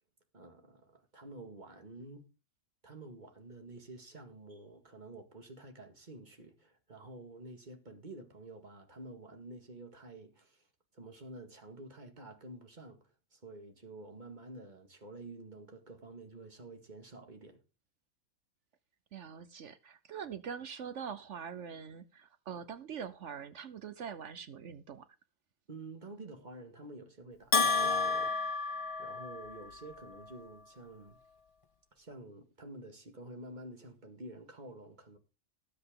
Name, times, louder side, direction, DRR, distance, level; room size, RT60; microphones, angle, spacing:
voice 1, 0.3-2.3 2.8-10.7 10.9-17.6 25.7-28.4 28.6-31.2 32.0-35.2, right 2 dB, 35° right, 2.1 m, -49 dB
voice 2, 19.1-25.1, right 7 dB, 65° right, 1.1 m, -43 dB
Bell, 27.5-29.7, left 4 dB, 35° left, 0.5 m, -30 dB
19.0 x 7.9 x 3.8 m
omnidirectional pair, 1.4 m